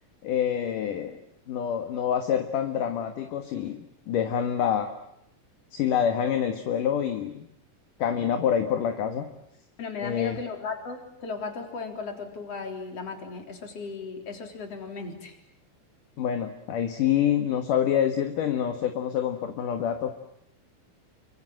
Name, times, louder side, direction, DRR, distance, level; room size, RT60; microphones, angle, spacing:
voice 1, 0.2-1.2 1.5-4.9 5.7-7.5 8.0-9.3 10.0-10.4 16.2-20.1, left 9 dB, 65° left, 6 dB, 3.1 m, -26 dB
voice 2, 9.8-15.4, left 4 dB, 45° left, 5 dB, 4.7 m, -36 dB
29.0 x 25.5 x 7.7 m, 0.75 s
omnidirectional pair, 4.2 m